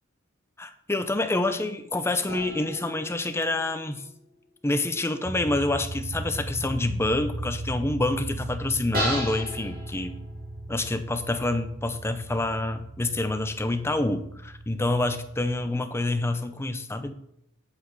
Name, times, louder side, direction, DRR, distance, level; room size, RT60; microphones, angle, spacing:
voice 1, 0.6-4.0 4.6-10.1 10.7-17.1, left 2 dB, 10° left, 9 dB, 0.6 m, -27 dB
sound 1, 2.3-4.3 8.9-10.8, equal, 45° right, 2.5 m, -35 dB
sound 2, 5.2-15.7, right 1 dB, 30° right, 0.7 m, -37 dB
8.1 x 7.7 x 4.0 m, 0.75 s
head